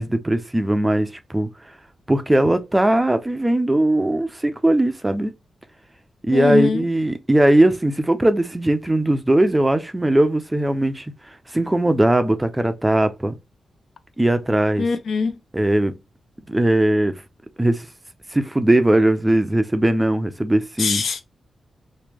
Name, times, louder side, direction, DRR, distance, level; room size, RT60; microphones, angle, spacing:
voice 1, 0.0-1.5 2.1-5.3 6.3-13.3 14.2-14.9 15.5-15.9 16.5-17.1 17.6-17.9 18.3-21.0, right 1 dB, 10° right, 0.4 m, -19 dB
voice 2, 6.3-6.8 14.8-15.4 20.8-21.2, left 5 dB, 65° left, 0.5 m, -22 dB
3.0 x 2.1 x 3.3 m
wide cardioid pair, 105°, 0 cm